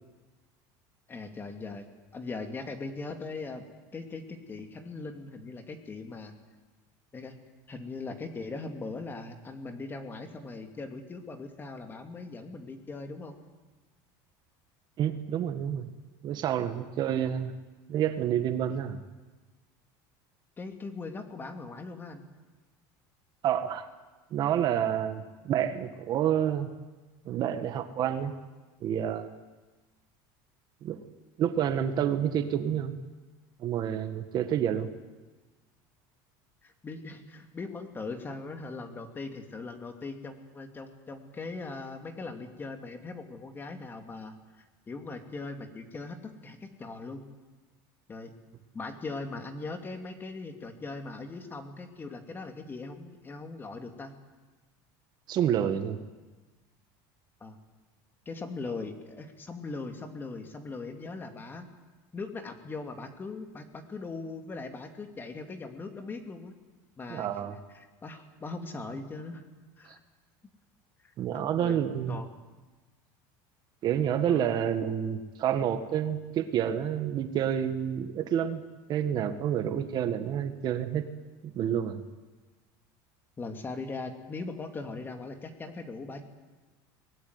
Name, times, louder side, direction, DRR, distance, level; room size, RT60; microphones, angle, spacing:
voice 1, 1.1-1.9 2.1-3.6 3.9-6.3 7.1-7.3 7.7-13.4 20.6-22.2 36.6-47.3 48.1-48.3 48.7-54.1 57.4-57.6 58.3-61.7 62.1-66.6 67.0-67.3 67.7-69.5 69.8-70.0 71.0-71.8 72.1-72.3 74.3-74.6 83.4-86.2, left 3 dB, 20° left, 6 dB, 2.6 m, -40 dB
voice 2, 15.0-15.9 16.2-17.6 17.9-19.0 23.4-23.9 24.3-26.7 27.3-28.3 28.8-29.4 30.8-31.0 31.4-32.9 33.6-34.9 55.3-56.0 67.1-67.6 69.9-70.0 71.2-72.2 73.8-81.1 81.4-82.0, right 9 dB, 40° right, 9 dB, 1.7 m, -29 dB
23.5 x 19.5 x 9.6 m, 1.3 s
cardioid pair, 140°, 10 cm